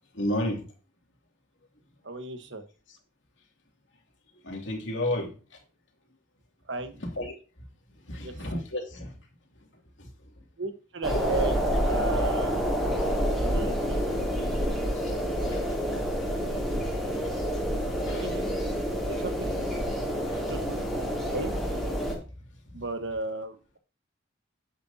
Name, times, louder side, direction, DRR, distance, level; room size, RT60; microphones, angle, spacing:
voice 1, 0.1-0.6 4.4-5.3 7.0-7.3 8.1-9.1 10.0-10.1 11.1-11.2 15.5-15.6 18.1-18.3 20.3-20.4, left 1 dB, 75° left, 1 dB, 2.5 m, -31 dB
voice 2, 2.0-2.6 6.7-7.0 8.2-8.3 10.6-11.6 11.8-12.6 13.4-14.9 18.1-18.5 19.1-19.6 20.4-20.8 21.3-21.5 22.7-23.8, right 3 dB, 70° right, 8 dB, 1.2 m, -35 dB
sound 1, 11.0-22.1, equal, ahead, 2.9 m, -28 dB
10.0 x 8.0 x 2.8 m, 0.36 s
head